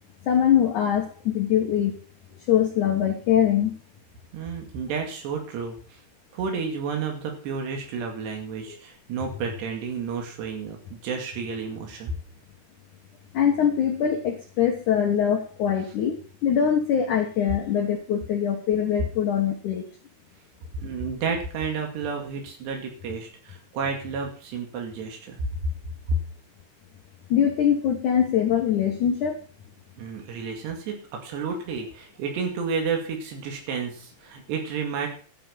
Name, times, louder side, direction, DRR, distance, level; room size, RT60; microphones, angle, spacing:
voice 1, 0.2-2.0 2.5-3.8 8.7-8.8 13.3-19.9 27.3-29.4, left 9 dB, 60° left, 2 dB, 2.3 m, -23 dB
voice 2, 4.3-6.0 6.3-12.1 20.7-25.4 26.1-26.2 30.0-35.1, right 5 dB, 85° right, 2 dB, 4.5 m, -31 dB
12.5 x 10.5 x 5.8 m, 0.42 s
omnidirectional pair, 4.7 m